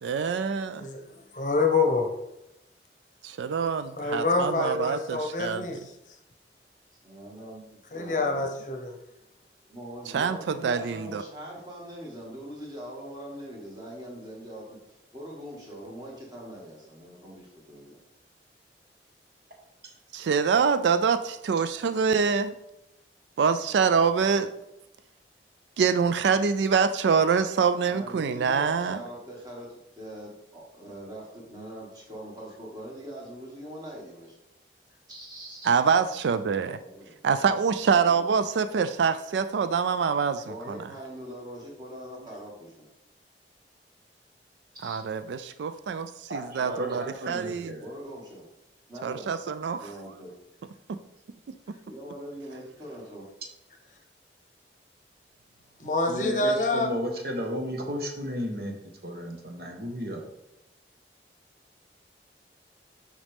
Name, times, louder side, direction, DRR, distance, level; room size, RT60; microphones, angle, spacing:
voice 1, 0.0-0.8 3.2-5.8 10.1-11.2 20.1-22.6 23.4-24.5 25.8-29.0 35.6-36.8 37.2-40.4 44.8-47.7 49.0-49.8 50.9-51.0, right 6 dB, 85° right, 11 dB, 0.3 m, -25 dB
voice 2, 0.8-2.1 4.0-5.8 7.9-8.9 55.8-56.9, left 3 dB, 45° left, 4 dB, 0.8 m, -26 dB
voice 3, 7.0-8.5 9.7-18.0 27.9-34.4 35.1-35.7 36.7-37.2 40.5-42.8 44.7-45.0 47.8-48.4 48.9-49.3 49.8-50.3 51.9-53.2, equal, 25° right, -3 dB, 1.9 m, -42 dB
voice 4, 46.3-47.8 56.1-58.8 59.0-60.2, equal, 55° right, 2 dB, 1.2 m, -33 dB
7.2 x 5.1 x 3.4 m, 0.88 s
head